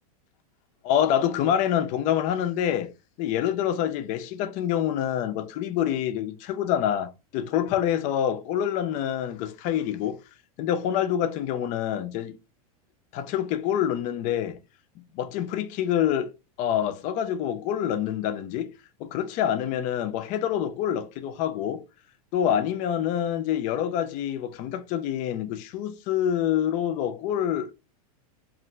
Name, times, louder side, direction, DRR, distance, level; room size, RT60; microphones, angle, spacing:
voice 1, 0.8-2.9 3.2-10.2 10.6-12.4 13.1-14.6 15.1-16.3 16.6-18.7 19.0-21.8 22.3-27.7, left 10 dB, 40° left, 0.5 m, -26 dB
2.5 x 2.1 x 3.8 m
supercardioid pair, 125°, 19 cm